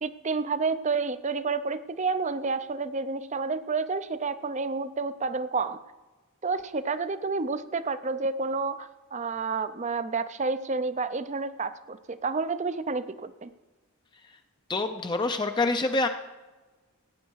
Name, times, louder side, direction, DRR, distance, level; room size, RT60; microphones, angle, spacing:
voice 1, 0.0-5.8 6.4-13.5, right 4 dB, 30° right, 13 dB, 0.5 m, -30 dB
voice 2, 14.7-16.1, left 2 dB, 20° left, 6 dB, 0.5 m, -26 dB
17.5 x 9.1 x 4.6 m, 1.2 s
head